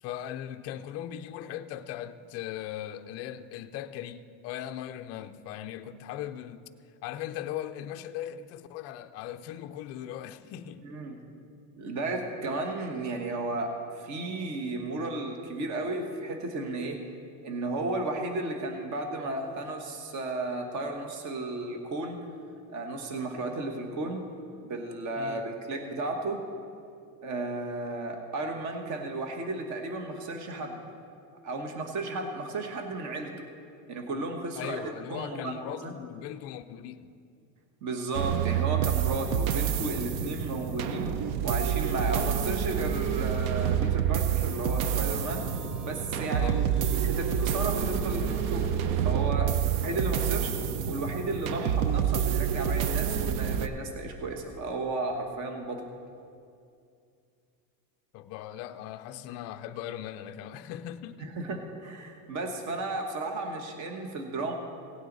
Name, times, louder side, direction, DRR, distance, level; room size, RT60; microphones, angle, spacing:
voice 1, 0.0-6.6 7.0-10.9 25.2-25.5 34.5-37.1 46.3-46.7 58.1-61.3, left 11 dB, 35° left, 0.4 m, -39 dB
voice 2, 10.8-11.2 11.8-17.0 17.4-22.2 22.7-24.3 24.6-26.4 27.2-30.8 31.4-33.3 33.9-34.8 35.1-35.9 37.8-41.1 41.4-45.5 45.8-46.5 46.9-50.5 50.9-55.8 61.2-64.5, right 2 dB, 35° right, 1.2 m, -34 dB
sound 1, 38.1-53.7, right 9 dB, 55° right, 0.7 m, -28 dB
sound 2, 43.8-54.6, right 1 dB, 85° right, 2.1 m, -47 dB
17.5 x 9.1 x 4.0 m
supercardioid pair, 145°, 48 cm